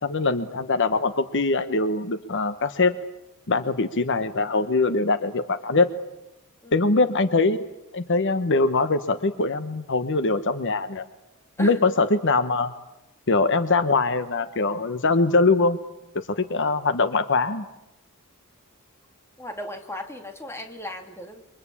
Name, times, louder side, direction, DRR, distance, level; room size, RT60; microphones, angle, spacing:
voice 1, 0.0-2.9 3.5-5.9 6.7-7.6 7.9-11.0 11.6-12.7 13.3-15.8 16.4-17.7, left 3 dB, 55° left, 11 dB, 1.0 m, -22 dB
voice 2, 19.4-21.4, left 1 dB, 10° left, 4 dB, 2.7 m, -36 dB
28.0 x 24.0 x 8.5 m, 0.92 s
head